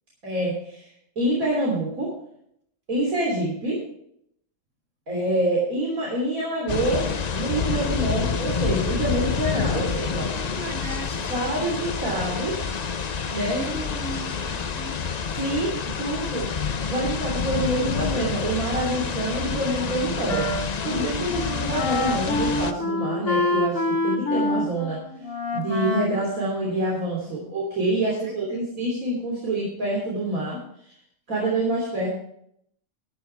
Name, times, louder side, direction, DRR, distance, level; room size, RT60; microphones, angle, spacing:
voice 1, 0.2-2.1 2.9-3.8 5.1-10.3 11.1-12.7 13.3-13.6 15.3-16.5 16.8-25.0 25.5-31.0 31.3-32.1, right 1 dB, 80° right, -4 dB, 3.8 m, -27 dB
sound 1, 6.7-22.7, left 6 dB, 40° left, 0.6 m, -28 dB
voice 2, 9.6-11.5 13.5-15.0 27.3-27.5 28.1-28.7, right 1 dB, 60° right, 0 dB, 3.7 m, -38 dB
Wind instrument woodwind instrument, 19.8-27.2, left 2 dB, 70° left, 2.3 m, -28 dB
13.0 x 10.5 x 4.7 m, 0.71 s
omnidirectional pair, 1.4 m